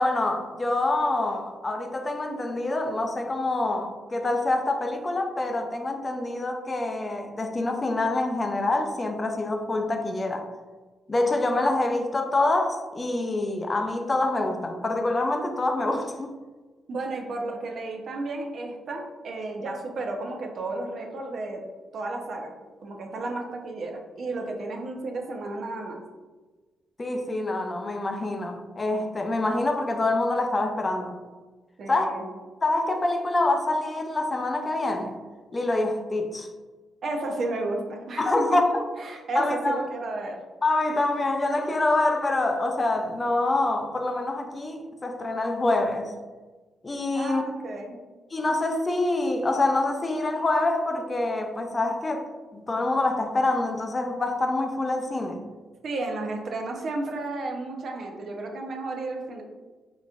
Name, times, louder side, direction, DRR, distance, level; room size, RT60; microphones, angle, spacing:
voice 1, 0.0-10.5 11.1-16.3 27.0-31.2 31.9-32.1 32.6-35.2 35.5-36.5 38.2-38.8 39.3-39.8 40.6-46.1 46.8-47.4 48.3-52.3 52.5-55.4, left 2 dB, 30° left, 0.5 m, -26 dB
voice 2, 16.9-21.6 21.9-22.5 22.8-26.0 31.8-32.2 37.0-38.6 39.0-40.4 47.1-48.0 55.8-59.4, right 2 dB, 60° right, 0.7 m, -32 dB
4.0 x 3.7 x 2.4 m
cardioid pair, 75°, 0 cm